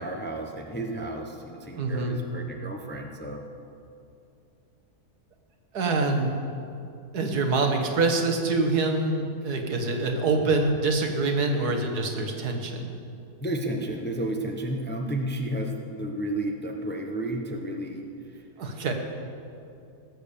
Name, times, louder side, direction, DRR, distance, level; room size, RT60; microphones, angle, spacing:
voice 1, 0.0-3.5 9.4-9.5 13.4-18.4, right 1 dB, 10° left, 3 dB, 0.6 m, -32 dB
voice 2, 1.7-2.2 5.7-6.4 7.1-13.0 18.6-18.9, right 3 dB, 85° right, 4 dB, 1.8 m, -25 dB
17.0 x 7.2 x 6.8 m, 2.6 s
omnidirectional pair, 1.6 m